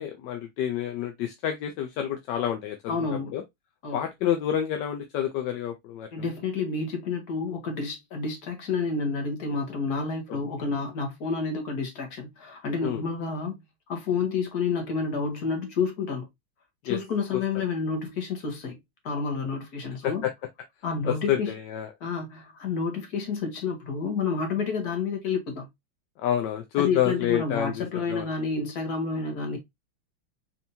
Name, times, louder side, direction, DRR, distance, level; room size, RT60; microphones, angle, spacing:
voice 1, 0.0-3.4 3.9-6.3 10.3-10.7 12.8-13.0 16.8-17.0 17.3-17.4 20.0-20.3 21.0-21.9 26.2-28.3, left 10 dB, 70° left, 1.1 m, -29 dB
voice 2, 2.9-3.4 3.8-4.0 6.1-13.5 13.9-16.3 16.8-18.8 19.0-20.3 20.8-21.5 22.0-25.7 26.8-29.6, left 4 dB, 55° left, 1.7 m, -29 dB
4.3 x 3.4 x 2.7 m
omnidirectional pair, 2.2 m